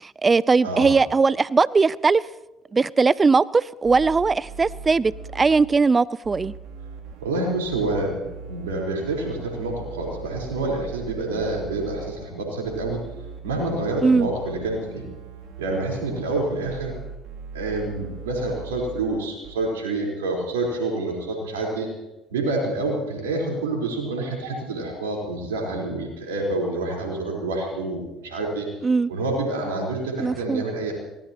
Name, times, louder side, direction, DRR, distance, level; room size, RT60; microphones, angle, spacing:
voice 1, 0.0-2.3 2.7-6.5 14.0-14.3 28.8-29.1 30.2-30.6, right 4 dB, 30° right, 21 dB, 0.5 m, -19 dB
voice 2, 0.6-1.0 7.2-13.0 13.4-15.1 15.6-16.9 17.5-21.9 22.3-28.7 29.1-30.9, right 2 dB, 90° right, -1 dB, 4.3 m, -27 dB
sound 1, 3.8-5.6 6.2-8.7 9.0-12.1 12.6-19.1 19.4-19.5, right 5 dB, 70° right, 2.9 m, -39 dB
24.0 x 18.0 x 3.0 m, 0.98 s
hypercardioid pair, 65°, 0 cm